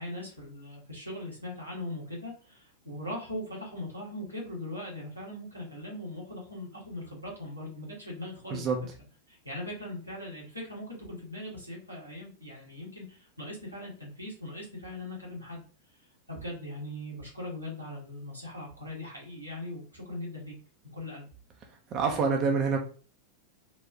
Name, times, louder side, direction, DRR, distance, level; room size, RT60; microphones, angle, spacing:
voice 1, 0.0-8.8 9.3-15.6 16.0-20.5 20.9-21.3, left 1 dB, 85° right, -4 dB, 1.6 m, -40 dB
voice 2, 21.9-22.8, right 5 dB, 35° right, 2 dB, 0.6 m, -26 dB
4.0 x 2.4 x 3.5 m, 0.40 s
figure-of-eight pair, 90°, 0 cm